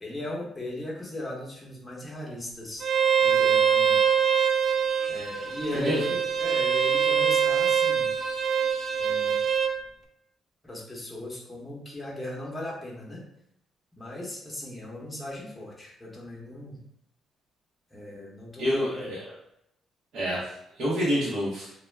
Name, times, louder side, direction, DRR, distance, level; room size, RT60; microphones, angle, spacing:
voice 1, 0.0-2.9 3.2-4.0 5.1-8.1 9.0-9.4 10.6-13.2 14.0-16.8 17.9-19.1, left 1 dB, 10° left, -4 dB, 0.8 m, -37 dB
Bowed string instrument, 2.8-9.7, right 7 dB, 50° right, 0.3 m, -24 dB
voice 2, 18.6-19.2 20.1-21.7, equal, 70° right, -8 dB, 0.8 m, -28 dB
2.2 x 2.1 x 3.2 m, 0.78 s
cardioid pair, 90°, 0 cm